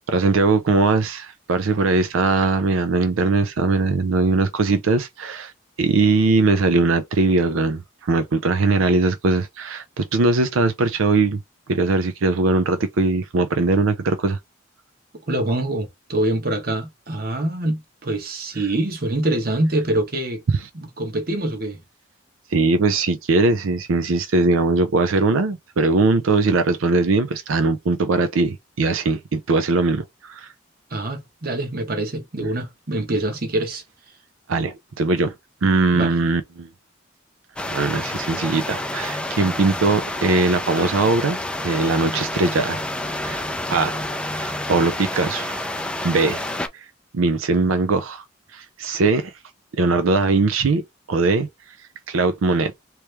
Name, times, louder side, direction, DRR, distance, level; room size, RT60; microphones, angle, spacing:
voice 1, 0.1-5.5 5.8-11.4 11.7-14.4 20.5-20.7 22.5-30.5 34.5-35.3 35.6-36.7 37.7-42.9 43.2-43.4 43.7-45.6 46.0-46.5 46.7-46.9 47.1-48.2 48.5-49.3 49.7-50.8 51.1-51.5 52.1-52.8, right 3 dB, 85° right, 0.5 m, -20 dB
voice 2, 15.3-20.4 20.7-21.8 30.9-33.8 35.9-36.1, right 1 dB, 45° right, 1.1 m, -25 dB
sound 1, 37.6-46.7, left 1 dB, 5° left, 0.4 m, -29 dB
3.1 x 2.9 x 3.3 m
head